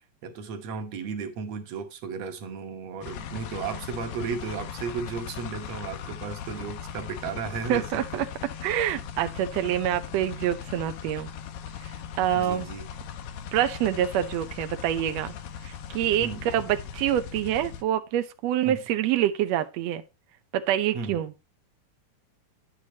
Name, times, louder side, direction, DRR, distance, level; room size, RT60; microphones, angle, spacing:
voice 1, 0.2-8.3 12.3-12.9 16.2-16.7 18.6-18.8 20.9-21.3, right 5 dB, 60° right, 2.0 m, -35 dB
sound 1, 3.0-17.8, left 8 dB, 90° left, 2.6 m, -39 dB
voice 2, 7.7-8.0 8.6-11.3 11.8-11.9 12.2-12.7 13.5-15.3 15.6-20.0 20.5-21.3, right 11 dB, 90° right, 1.4 m, -26 dB
9.7 x 8.2 x 2.8 m
omnidirectional pair, 3.9 m